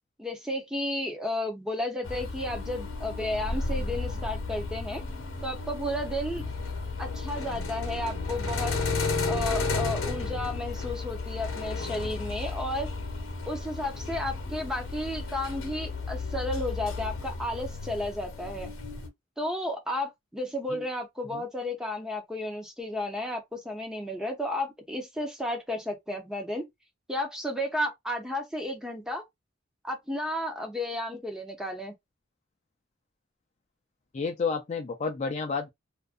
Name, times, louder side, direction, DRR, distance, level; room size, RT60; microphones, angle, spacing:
voice 1, 0.2-5.0 5.4-6.4 7.0-8.8 9.3-12.9 13.4-18.7 19.4-26.6 27.1-29.2 29.8-31.9, left 1 dB, 5° right, 0.6 m, -33 dB
sound 1, 2.0-19.1, left 3 dB, 70° left, 0.8 m, -33 dB
voice 2, 34.1-35.7, left 5 dB, 35° left, 0.3 m, -30 dB
2.5 x 2.2 x 2.4 m
head